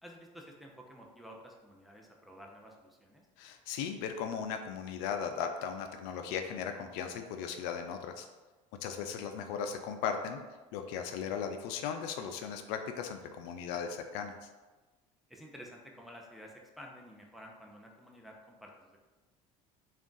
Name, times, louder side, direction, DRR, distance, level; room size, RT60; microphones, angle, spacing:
voice 1, 0.0-3.3 9.0-9.1 15.3-19.0, equal, ahead, -1 dB, 0.7 m, -51 dB
voice 2, 3.4-8.3 8.8-10.4 10.7-14.5, left 7 dB, 75° left, 6 dB, 0.4 m, -37 dB
3.5 x 2.4 x 3.8 m, 1.2 s
supercardioid pair, 90°, 16 cm